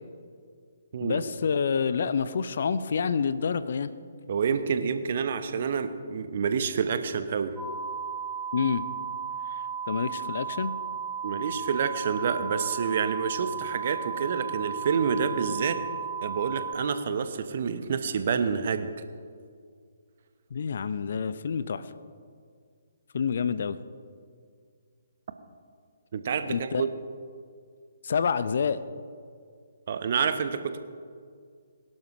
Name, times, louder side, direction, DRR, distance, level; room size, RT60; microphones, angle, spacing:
voice 1, 1.0-3.9 8.5-8.8 9.9-10.7 20.5-21.9 23.1-23.8 26.4-26.9 28.0-28.8, left 6 dB, 50° left, 14 dB, 0.6 m, -28 dB
voice 2, 4.3-7.5 11.2-15.8 16.2-18.9 26.1-26.9 29.9-30.8, right 6 dB, 45° right, 10 dB, 0.9 m, -28 dB
sound 1, 7.6-16.8, right 7 dB, 10° right, 1.0 m, -34 dB
22.0 x 12.0 x 3.1 m, 2.1 s
figure-of-eight pair, 135°, 0 cm